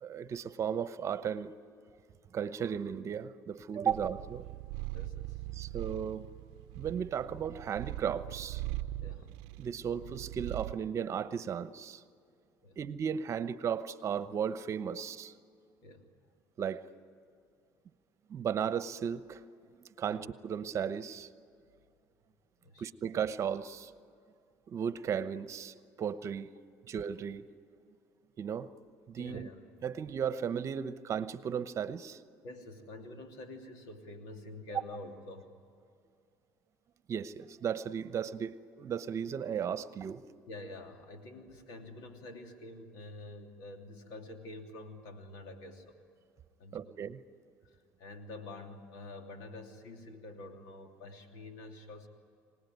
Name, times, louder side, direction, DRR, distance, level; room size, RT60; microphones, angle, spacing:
voice 1, 0.0-1.5 2.3-4.4 5.5-6.2 6.7-8.6 9.6-12.0 12.8-15.3 16.6-16.8 18.3-19.4 19.8-21.3 22.8-23.9 24.7-26.5 26.9-27.4 28.4-28.7 29.1-29.5 29.8-32.2 37.1-40.2 46.7-47.2, right 8 dB, 45° right, 13 dB, 1.0 m, -35 dB
Purr, 3.9-10.8, right 16 dB, 85° right, 0.6 m, -41 dB
voice 2, 4.9-5.4 9.0-9.3 12.6-12.8 15.8-16.0 19.6-19.8 20.1-20.2 22.6-22.9 29.2-29.6 32.4-35.6 40.5-46.0 46.6-47.0 47.6-52.1, left 2 dB, 80° left, 4 dB, 2.9 m, -47 dB
25.5 x 19.0 x 9.5 m, 2.4 s
supercardioid pair, 95°, 7 cm